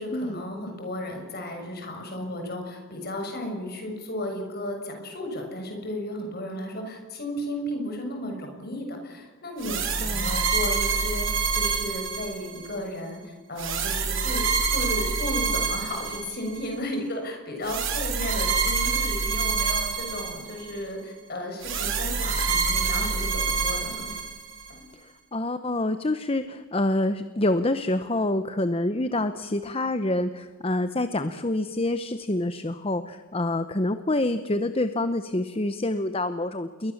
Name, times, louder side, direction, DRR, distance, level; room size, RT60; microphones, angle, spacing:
voice 1, 0.0-24.1 24.7-24.9, left 1 dB, 45° left, 3 dB, 6.7 m, -34 dB
sound 1, 9.6-12.8 13.6-16.7 17.6-20.8 21.6-24.7, right 5 dB, 60° right, 4.6 m, -27 dB
voice 2, 10.0-10.4 25.0-36.9, left 1 dB, 25° left, 10 dB, 0.9 m, -27 dB
28.5 x 22.0 x 7.3 m, 1.4 s
head